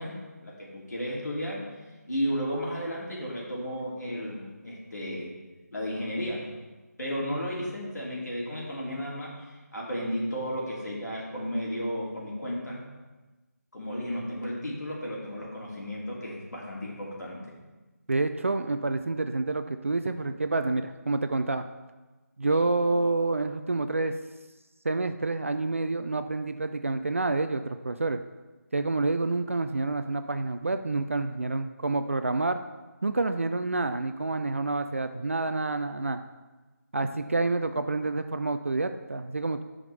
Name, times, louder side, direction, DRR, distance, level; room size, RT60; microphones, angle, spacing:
voice 1, 0.0-1.7 2.1-5.3 5.7-6.5 7.0-12.8 13.7-17.4, equal, 85° left, -4 dB, 2.6 m, -33 dB
voice 2, 18.1-21.6 22.4-24.2 24.8-28.2 28.7-32.6 33.0-36.2 36.9-39.6, right 3 dB, 50° right, 9 dB, 0.4 m, -28 dB
10.5 x 5.0 x 3.3 m, 1.2 s
figure-of-eight pair, 175°, 9 cm